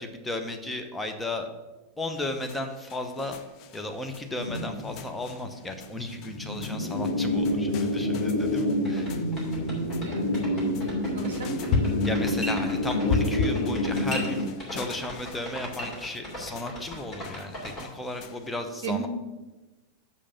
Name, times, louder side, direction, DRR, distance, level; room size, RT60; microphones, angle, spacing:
voice 1, 0.0-1.5 2.0-3.4 3.7-9.1 12.1-19.1, left 1 dB, 10° left, 5 dB, 0.9 m, -35 dB
sound 1, 2.1-18.5, left 5 dB, 40° left, 0.6 m, -37 dB
sound 2, 4.4-5.5 5.8-5.9 6.1-14.4, left 1 dB, 75° left, 1.2 m, -28 dB
sound 3, 8.8-17.8, left 1 dB, 25° left, 2.7 m, -37 dB
voice 2, 9.8-11.6 18.8-19.1, right 6 dB, 55° right, 8 dB, 0.8 m, -36 dB
7.0 x 5.1 x 6.9 m, 1.1 s
figure-of-eight pair, 90°, 0 cm